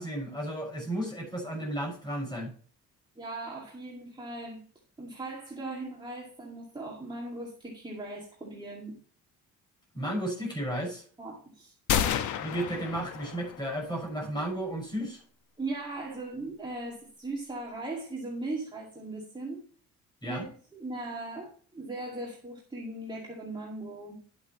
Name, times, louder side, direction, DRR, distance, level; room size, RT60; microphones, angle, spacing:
voice 1, 0.0-2.5 9.9-11.0 12.4-15.2 20.2-20.4, right 1 dB, 15° left, -2 dB, 5.8 m, -33 dB
voice 2, 3.2-4.6 5.0-8.9 11.2-11.7 15.6-19.6 20.2-24.2, right 2 dB, 15° right, -4 dB, 2.3 m, -38 dB
sound 1, 11.9-13.8, left 9 dB, 85° left, 1.0 m, -30 dB
11.5 x 8.3 x 3.1 m, 0.43 s
cardioid pair, 140°, 29 cm